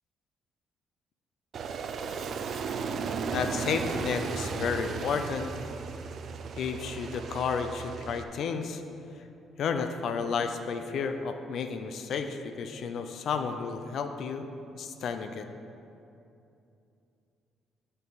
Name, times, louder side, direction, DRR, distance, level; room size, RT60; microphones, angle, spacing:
Aircraft, 1.5-8.2, right 5 dB, 50° right, 0.5 m, -35 dB
voice 1, 3.3-5.5 6.6-8.8 9.6-14.5 14.8-15.5, left 6 dB, 55° left, 7 dB, 0.6 m, -32 dB
11.0 x 5.6 x 4.1 m, 2.7 s
cardioid pair, 140°, 0 cm